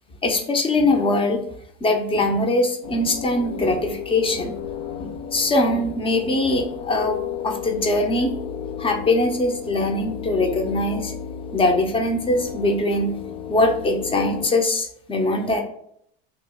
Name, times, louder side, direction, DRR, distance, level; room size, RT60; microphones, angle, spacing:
voice 1, 0.2-1.4 1.8-4.6 5.0-8.3 8.8-11.1 11.5-13.1 13.5-15.6, left 2 dB, 20° left, 3 dB, 0.6 m, -22 dB
sound 1, 2.8-14.5, left 8 dB, 60° left, 0.5 m, -33 dB
3.0 x 2.4 x 3.5 m, 0.69 s
supercardioid pair, 105°, 30 cm